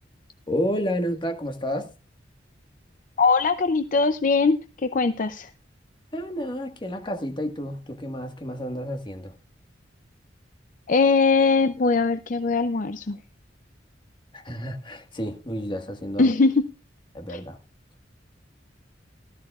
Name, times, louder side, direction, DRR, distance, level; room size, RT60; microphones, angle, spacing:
voice 1, 0.5-1.9 6.1-9.3 14.3-16.3 17.1-17.6, equal, 25° left, 1.6 m, -30 dB
voice 2, 3.2-5.5 10.9-13.2 16.2-16.7 17.3-17.4, left 4 dB, 45° left, 0.5 m, -21 dB
18.5 x 12.5 x 2.4 m
head